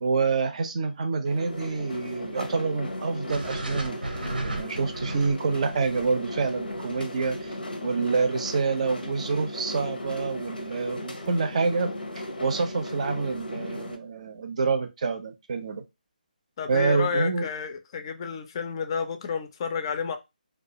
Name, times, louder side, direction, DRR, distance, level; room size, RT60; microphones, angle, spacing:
voice 1, 0.0-4.0 4.4-7.6 7.8-11.9 12.2-15.8 16.7-17.5, right 4 dB, 45° right, 0.5 m, -27 dB
sound 1, 1.2-14.0, left 1 dB, 85° left, 0.6 m, -36 dB
sound 2, 3.3-7.5, right 2 dB, 85° right, 0.7 m, -35 dB
voice 2, 16.6-20.2, left 6 dB, 35° left, 0.4 m, -30 dB
2.3 x 2.3 x 2.7 m
figure-of-eight pair, 150°, 5 cm